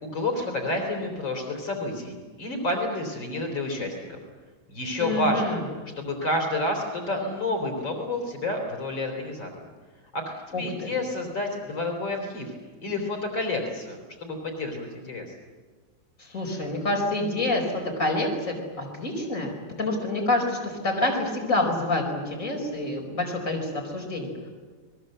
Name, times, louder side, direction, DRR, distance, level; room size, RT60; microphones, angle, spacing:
voice 1, 0.0-4.2 4.7-5.6 6.0-9.5 10.1-12.5 12.8-15.3, left 2 dB, 80° left, 2 dB, 4.5 m, -29 dB
voice 2, 5.0-5.6 10.5-10.9 16.2-19.5 19.8-24.5, left 2 dB, 40° left, 0 dB, 5.4 m, -27 dB
30.0 x 21.0 x 7.9 m, 1.4 s
omnidirectional pair, 2.1 m